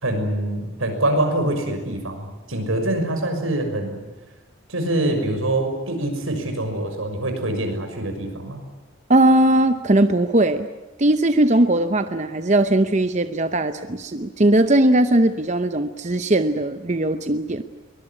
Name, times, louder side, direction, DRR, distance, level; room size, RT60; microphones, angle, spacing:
voice 1, 0.0-4.0 4.7-8.6, right 1 dB, 85° right, 5 dB, 6.3 m, -24 dB
voice 2, 9.1-10.7 11.0-17.6, right 1 dB, 35° right, 9 dB, 0.8 m, -19 dB
23.0 x 20.5 x 9.9 m, 1.2 s
head